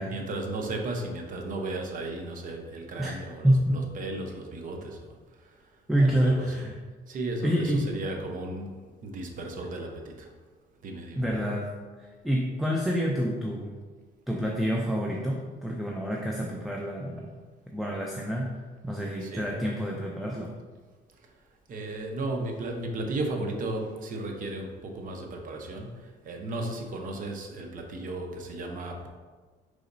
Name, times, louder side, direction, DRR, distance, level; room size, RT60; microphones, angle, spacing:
voice 1, 0.0-6.6 7.1-10.3 10.8-11.2 19.2-19.5 21.2-21.3 21.7-29.1, right 2 dB, 55° right, 3 dB, 0.8 m, -35 dB
voice 2, 3.4-3.7 5.9-6.7 7.4-7.9 11.2-11.7 12.0-13.8 14.3-17.2 17.7-18.5 18.8-20.5, equal, ahead, -1 dB, 0.4 m, -27 dB
4.8 x 3.9 x 2.6 m, 1.4 s
cardioid pair, 110°, 17 cm